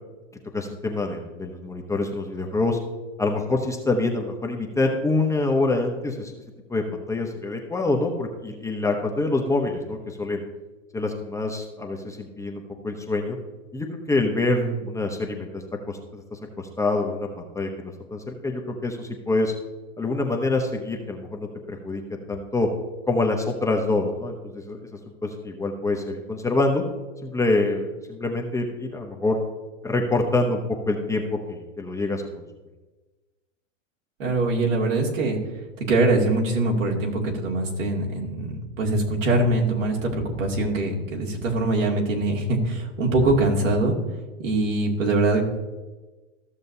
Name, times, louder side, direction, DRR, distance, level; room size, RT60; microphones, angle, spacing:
voice 1, 0.5-2.8 3.2-6.4 6.7-10.4 10.9-13.4 13.7-19.5 20.0-22.0 22.3-22.7 23.1-24.8 25.2-26.8 27.2-29.4 29.8-32.4, left 2 dB, 10° left, 1 dB, 0.8 m, -26 dB
voice 2, 34.2-35.4 35.9-44.0 44.4-45.4, right 2 dB, 75° right, -2 dB, 2.6 m, -23 dB
14.5 x 6.5 x 2.7 m, 1.2 s
hypercardioid pair, 120°, 38 cm